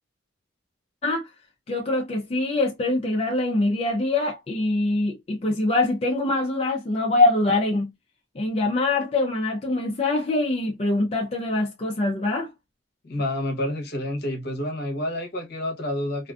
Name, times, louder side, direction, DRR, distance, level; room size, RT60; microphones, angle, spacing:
voice 1, 1.7-7.9 8.3-12.5, left 2 dB, 30° left, 0.4 m, -24 dB
voice 2, 13.0-16.3, left 1 dB, 60° left, 0.8 m, -29 dB
2.5 x 2.3 x 2.3 m
head